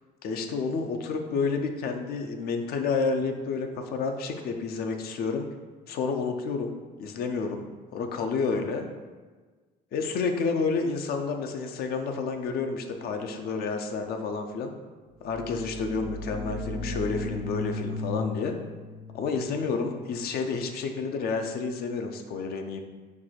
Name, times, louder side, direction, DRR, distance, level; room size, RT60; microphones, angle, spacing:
voice 1, 0.2-5.5 5.9-7.6 7.9-8.9 9.9-14.7 15.2-18.5 19.1-22.8, left 4 dB, 65° left, 5 dB, 0.5 m, -30 dB
sound 1, 15.2-20.8, left 2 dB, 55° right, 0.6 m, -36 dB
4.6 x 2.3 x 4.3 m, 1.4 s
cardioid pair, 110°, 17 cm